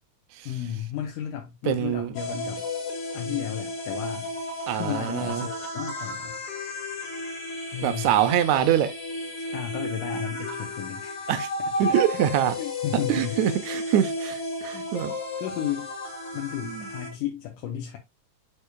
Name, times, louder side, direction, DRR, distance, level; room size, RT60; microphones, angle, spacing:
voice 1, 0.5-2.6 3.1-4.3 4.7-6.4 7.7-8.2 9.5-11.3 11.8-11.9 12.6-13.4 14.7-14.9 15.4-15.9 16.3-18.0, left 10 dB, 80° left, 2.6 m, -33 dB
voice 2, 1.7-2.1 4.7-5.5 7.8-8.9 11.3-11.5 11.8-12.6 12.9-15.1 16.6-16.9, right 11 dB, 75° right, 1.9 m, -24 dB
sound 1, 2.2-17.1, left 2 dB, 65° left, 3.3 m, -33 dB
6.7 x 6.5 x 2.2 m
omnidirectional pair, 3.7 m